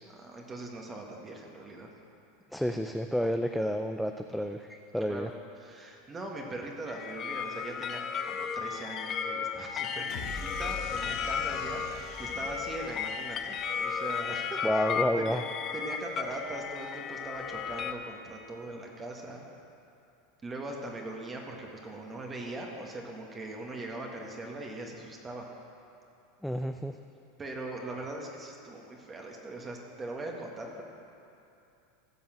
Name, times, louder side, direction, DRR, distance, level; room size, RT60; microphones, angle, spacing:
voice 1, 0.1-1.9 3.5-3.7 5.1-14.9 15.2-15.4 15.7-19.4 20.4-25.5 27.4-30.8, right 2 dB, 25° right, 0 dB, 1.7 m, -41 dB
voice 2, 2.5-5.3 14.6-15.4 26.4-26.9, equal, ahead, 5 dB, 0.5 m, -30 dB
sound 1, 6.9-17.9, left 6 dB, 40° left, 0.7 m, -34 dB
sound 2, 10.1-14.4, left 3 dB, 60° left, 3.4 m, -44 dB
15.0 x 5.5 x 7.7 m, 2.7 s
hypercardioid pair, 100°, 0 cm